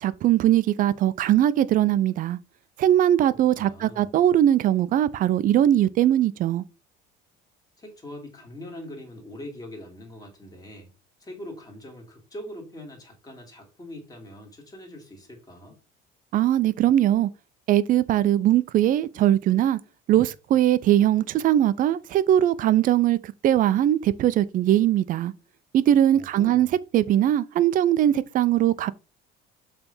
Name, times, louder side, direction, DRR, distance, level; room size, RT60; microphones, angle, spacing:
voice 1, 0.0-2.4 2.8-6.6 16.3-17.3 17.7-19.8 20.1-25.3 25.7-26.7 26.9-28.9, right 12 dB, 45° right, 0.6 m, -20 dB
voice 2, 3.5-4.1 7.8-10.9 11.2-15.8 26.1-26.7, left 1 dB, 20° left, 2.4 m, -42 dB
7.0 x 3.4 x 5.4 m
cardioid pair, 155°, 20 cm